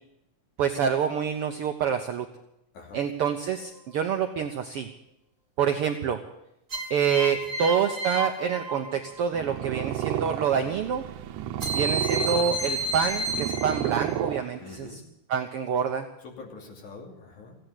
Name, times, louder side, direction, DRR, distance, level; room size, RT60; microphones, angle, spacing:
voice 1, 0.6-2.3 2.9-4.9 5.6-6.2 6.9-11.0 11.7-15.0 15.3-16.1, right 7 dB, 65° right, 6 dB, 1.5 m, -27 dB
voice 2, 2.7-3.1 7.4-7.5 14.6-15.0 16.2-17.6, left 4 dB, 75° left, 1 dB, 4.2 m, -44 dB
sound 1, 3.6-4.2 6.7-9.4 11.6-14.2, right 1 dB, 25° right, 2.8 m, -32 dB
Purr, 9.2-14.9, right 12 dB, 85° right, 2.3 m, -32 dB
16.0 x 9.1 x 9.7 m, 0.82 s
omnidirectional pair, 3.4 m